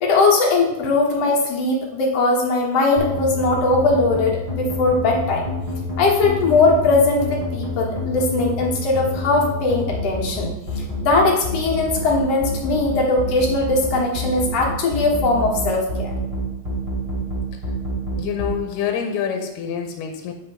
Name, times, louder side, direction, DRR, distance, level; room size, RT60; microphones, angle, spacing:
voice 1, 0.0-5.5 6.0-10.5 11.0-16.1, left 3 dB, 55° left, -2 dB, 2.0 m, -19 dB
sound 1, 3.0-18.5, left 2 dB, 20° right, 0.9 m, -27 dB
voice 2, 18.2-20.3, left 8 dB, 80° left, 4 dB, 2.3 m, -26 dB
8.1 x 3.5 x 5.5 m, 0.91 s
omnidirectional pair, 3.8 m